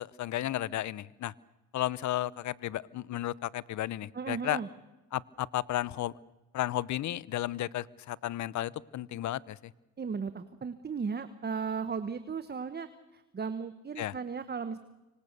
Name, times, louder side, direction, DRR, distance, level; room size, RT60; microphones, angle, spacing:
voice 1, 0.0-1.3 1.7-4.6 5.1-6.1 6.5-9.6 14.0-14.1, left 13 dB, 70° left, 21 dB, 0.8 m, -33 dB
voice 2, 4.1-4.7 10.0-12.9 13.1-14.8, right 5 dB, 35° right, 11 dB, 1.3 m, -36 dB
25.5 x 25.0 x 6.9 m, 1.1 s
cardioid pair, 90°, 30 cm